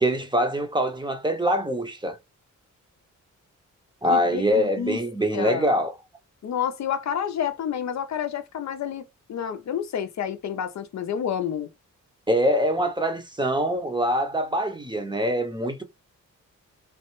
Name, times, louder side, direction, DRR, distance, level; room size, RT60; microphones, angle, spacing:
voice 1, 0.0-2.2 4.0-5.9 12.3-15.8, equal, 15° right, 0.7 m, -24 dB
voice 2, 4.1-5.0 5.3-5.7 6.4-11.7, left 8 dB, 60° left, 0.5 m, -29 dB
3.3 x 2.1 x 3.0 m
cardioid pair, 85°, 31 cm